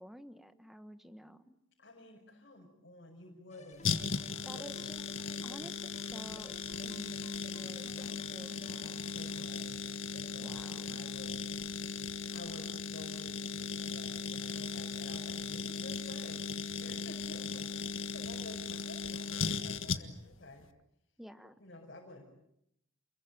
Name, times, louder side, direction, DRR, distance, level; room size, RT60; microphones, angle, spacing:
voice 1, 0.0-1.6 4.4-5.0 5.4-6.5 6.8-9.0 10.4-11.0 21.2-21.6, equal, ahead, 10 dB, 1.4 m, -51 dB
voice 2, 1.8-5.2 9.1-11.4 12.3-16.5 16.8-20.7 21.6-22.2, left 1 dB, 60° left, -2 dB, 5.8 m, -51 dB
sound 1, 3.5-9.5, left 2 dB, 35° left, 2.1 m, -55 dB
sound 2, 3.8-20.3 20.6-20.7, left 5 dB, 85° left, 1.7 m, -38 dB
29.0 x 22.5 x 9.2 m, 0.78 s
head